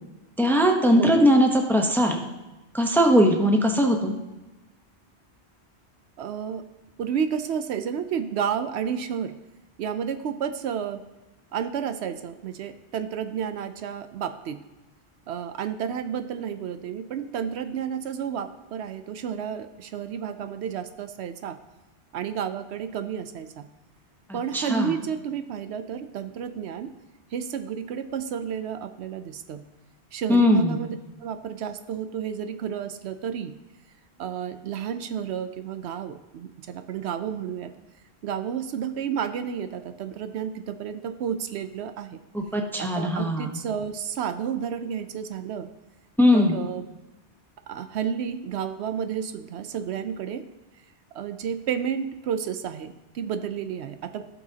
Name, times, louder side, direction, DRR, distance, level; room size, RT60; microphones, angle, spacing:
voice 1, 0.4-2.2 2.7-4.1 24.3-24.9 30.3-30.8 42.3-43.6 46.2-46.6, equal, ahead, 3 dB, 0.7 m, -20 dB
voice 2, 6.2-6.6 7.0-9.3 9.8-11.0 11.5-14.6 15.3-21.6 22.1-23.7 24.3-26.9 27.3-29.6 30.1-31.0 31.2-33.5 34.2-37.7 38.2-42.2 42.8-45.7 46.3-46.9 47.7-50.4 51.1-54.2, right 8 dB, 75° right, 9 dB, 0.8 m, -31 dB
15.5 x 5.6 x 2.8 m, 1.1 s
omnidirectional pair, 1.1 m